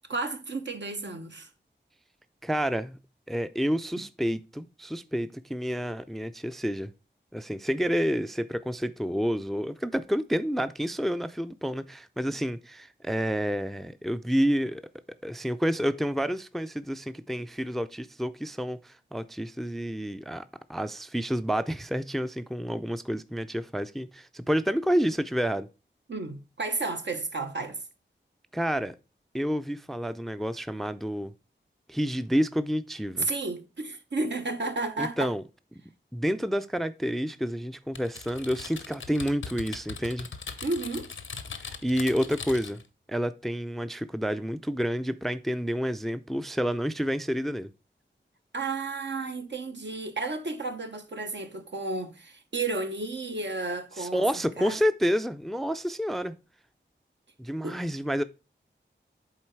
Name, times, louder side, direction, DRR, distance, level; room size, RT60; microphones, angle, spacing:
voice 1, 0.1-1.5 26.1-27.8 33.2-35.3 40.6-41.1 48.5-54.8 57.6-57.8, right 3 dB, 65° right, 1.0 m, -32 dB
voice 2, 2.4-3.0 3.3-6.9 7.3-14.8 15.2-20.4 20.7-25.7 28.5-28.9 29.3-31.3 31.9-33.3 35.0-35.4 36.1-40.3 41.6-42.8 43.1-47.7 54.0-56.3 57.4-58.2, equal, ahead, 0.4 m, -29 dB
Typing, 37.9-42.9, left 5 dB, 85° left, 0.7 m, -40 dB
7.5 x 4.0 x 4.6 m
cardioid pair, 45°, 20 cm